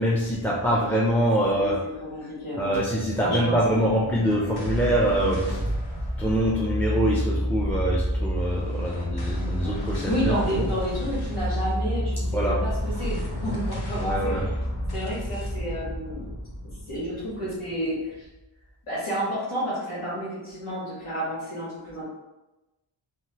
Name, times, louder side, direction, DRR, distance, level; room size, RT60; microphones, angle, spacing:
voice 1, 0.0-1.8 2.6-5.6 6.2-10.7 12.3-12.6 14.0-14.4, right 1 dB, 5° left, -5 dB, 0.4 m, -24 dB
voice 2, 2.0-2.8 3.2-3.9 10.0-14.5 14.9-16.3 16.9-18.3 18.9-22.1, equal, 85° left, -7 dB, 1.0 m, -30 dB
sound 1, 3.7-18.2, equal, 50° left, 0.9 m, -29 dB
2.9 x 2.3 x 2.9 m, 1.0 s
wide cardioid pair, 45°, 50 cm